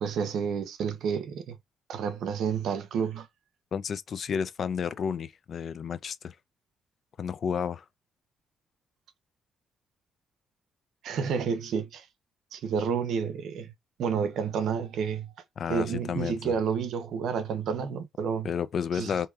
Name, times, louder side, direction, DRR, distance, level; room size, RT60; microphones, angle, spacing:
voice 1, 0.0-1.6 1.9-3.3 11.0-12.1 12.5-13.7 14.0-15.3 15.7-18.5 18.9-19.1, right 6 dB, 75° right, 0.7 m, -30 dB
voice 2, 3.7-6.3 7.2-7.8 15.6-16.5 18.4-19.3, left 7 dB, 55° left, 0.5 m, -31 dB
4.6 x 2.7 x 2.4 m
cardioid pair, 90°, 0 cm